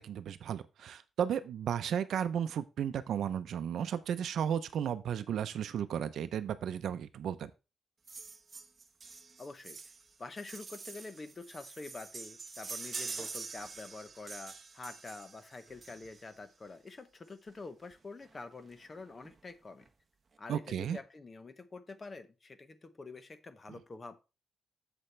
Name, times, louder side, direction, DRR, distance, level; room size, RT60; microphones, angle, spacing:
voice 1, 0.0-7.5 20.5-21.0, right 9 dB, 70° right, 12 dB, 0.6 m, -34 dB
sound 1, 8.1-16.4 17.5-17.6 17.9-18.0 18.2-18.4 18.7-19.3 19.8-19.9, right 4 dB, 25° right, 0.9 m, -46 dB
voice 2, 9.4-9.8 10.2-19.9 20.4-24.2, left 3 dB, 25° left, 12 dB, 0.7 m, -47 dB
8.5 x 6.9 x 3.3 m, 0.29 s
wide cardioid pair, 165°, 0 cm